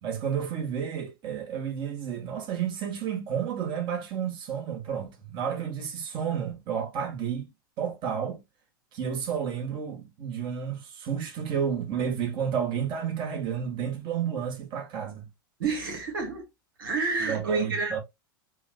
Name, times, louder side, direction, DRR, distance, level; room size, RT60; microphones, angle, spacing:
voice 1, 0.0-7.5 7.8-8.4 8.9-15.3 17.2-18.0, right 8 dB, 45° right, 1.9 m, -31 dB
voice 2, 15.6-16.5 16.8-18.0, right 4 dB, 80° right, 1.6 m, -29 dB
6.8 x 2.6 x 2.4 m
hypercardioid pair, 100°, 11 cm